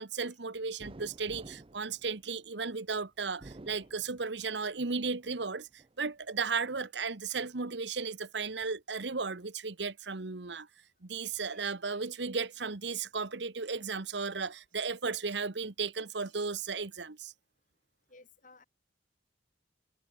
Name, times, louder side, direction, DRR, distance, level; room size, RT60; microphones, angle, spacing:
voice 1, 0.0-10.7 11.0-17.3, right 4 dB, 70° right, 1.2 m, -35 dB
sound 1, 0.8-2.7 3.3-4.6 5.0-5.9, right 2 dB, 30° right, 0.7 m, -51 dB
voice 2, 18.1-18.6, left 3 dB, 45° left, 5.9 m, -57 dB
head